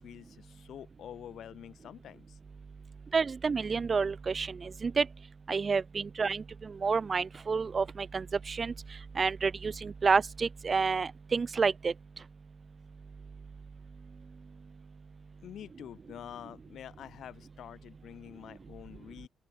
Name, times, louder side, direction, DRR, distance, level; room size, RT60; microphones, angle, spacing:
voice 1, 0.0-2.4 15.4-19.3, left 10 dB, 70° left, 4.0 m, -47 dB
voice 2, 3.1-5.1 5.5-8.7 9.2-11.9, right 5 dB, 35° right, 0.4 m, -29 dB
open air
cardioid pair, 125°, 0 cm